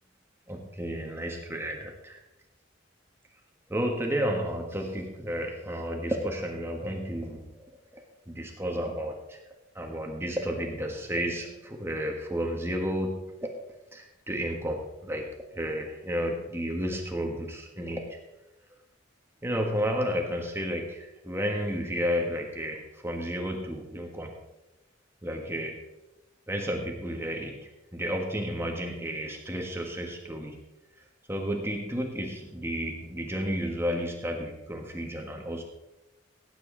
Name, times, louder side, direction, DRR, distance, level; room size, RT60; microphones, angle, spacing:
voice 1, 0.5-2.2 3.7-7.7 8.3-9.4 9.7-13.3 13.9-15.3 15.6-18.2 19.4-24.3 25.2-25.8 26.5-30.6 31.3-35.6, equal, 15° right, 1 dB, 1.4 m, -32 dB
17.5 x 9.3 x 3.8 m, 0.97 s
head